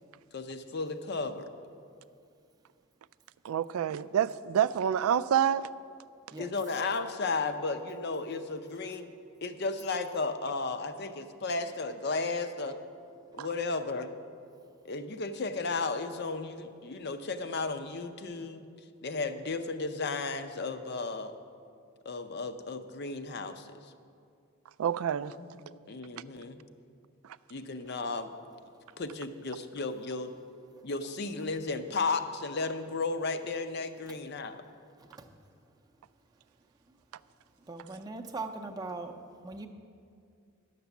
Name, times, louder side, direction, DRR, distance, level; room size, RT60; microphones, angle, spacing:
voice 1, 0.3-1.5 6.4-9.1 9.4-12.8 13.3-14.1 14.8-18.6 19.0-21.3 22.1-23.7 25.4-26.6 27.5-28.3 29.0-30.3 30.8-34.6, left 3 dB, 50° left, 9 dB, 0.6 m, -34 dB
voice 2, 3.4-5.7 13.4-13.5 24.8-25.3, right 9 dB, 90° right, 15 dB, 0.3 m, -27 dB
voice 3, 35.0-35.4 37.6-39.7, right 3 dB, 20° right, 4 dB, 0.5 m, -41 dB
10.5 x 6.7 x 7.1 m, 2.3 s
head